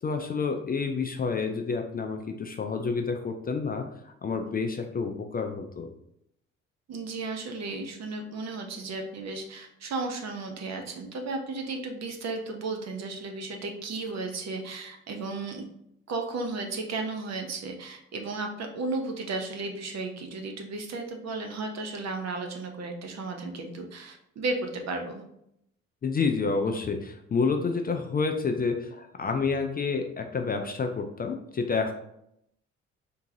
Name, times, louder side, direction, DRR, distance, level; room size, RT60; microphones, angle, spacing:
voice 1, 0.0-5.9 26.0-31.9, left 4 dB, 25° left, 5 dB, 0.4 m, -29 dB
voice 2, 6.9-15.6 16.1-25.2, right 3 dB, 45° right, 3 dB, 0.8 m, -34 dB
3.7 x 2.8 x 2.7 m, 0.76 s
hypercardioid pair, 50°, 36 cm